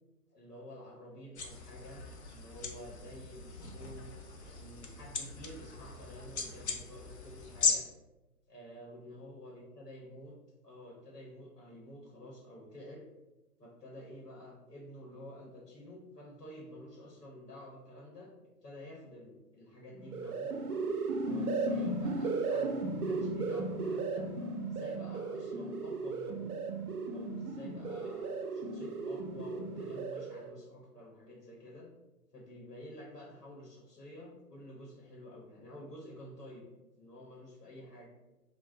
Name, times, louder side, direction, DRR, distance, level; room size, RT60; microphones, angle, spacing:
voice 1, 0.3-7.9 8.5-10.4 10.6-13.0 13.6-18.3 18.6-20.6 21.1-24.3 24.7-26.6 27.1-31.9 32.3-36.6 37.0-38.1, equal, 85° left, -4 dB, 0.9 m, -50 dB
sound 1, 1.4-7.7, left 5 dB, 50° left, 0.5 m, -38 dB
sound 2, 20.0-30.5, right 3 dB, 70° right, 0.6 m, -35 dB
2.5 x 2.1 x 3.4 m, 1.0 s
figure-of-eight pair, 130°, 47 cm